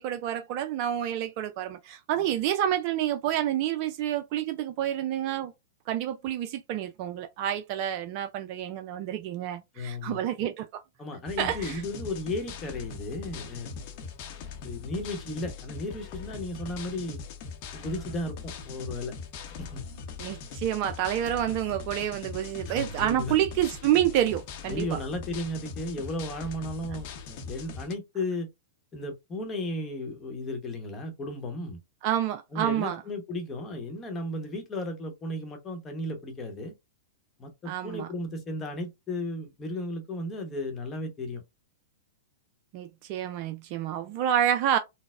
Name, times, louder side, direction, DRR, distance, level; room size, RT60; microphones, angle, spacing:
voice 1, 0.0-5.5 5.9-10.8 11.4-11.8 20.2-25.0 32.0-33.0 37.7-38.1 42.7-44.8, right 11 dB, 45° right, 0.3 m, -28 dB
voice 2, 9.7-10.2 11.0-14.0 14.6-17.2 17.7-19.1 19.6-19.8 22.7-23.3 24.7-28.5 28.9-31.8 32.5-36.7 37.4-41.4, left 1 dB, 25° left, 0.9 m, -35 dB
sound 1, 11.3-27.9, left 5 dB, 50° left, 0.7 m, -41 dB
3.9 x 2.0 x 2.4 m
hypercardioid pair, 105°, 0 cm